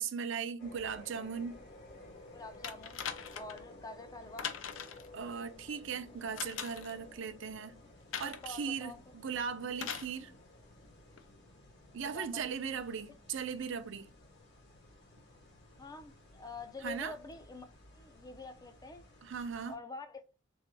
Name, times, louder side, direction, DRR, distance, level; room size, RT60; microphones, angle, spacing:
voice 1, 0.0-1.6 5.1-7.8 8.2-10.3 11.9-14.1 16.8-17.1 19.2-19.7, right 6 dB, 65° right, 0.5 m, -38 dB
sound 1, 0.6-19.8, left 2 dB, 60° left, 1.6 m, -56 dB
voice 2, 2.3-4.6 8.2-9.0 12.0-12.9 15.8-17.7 17.9-19.0 19.7-20.3, left 3 dB, 20° left, 0.5 m, -47 dB
sound 2, 2.6-3.6 4.4-5.1 6.4-7.0 8.1-8.5 9.8-10.1 11.2-11.3, left 7 dB, 75° left, 0.6 m, -40 dB
3.6 x 3.2 x 4.0 m
head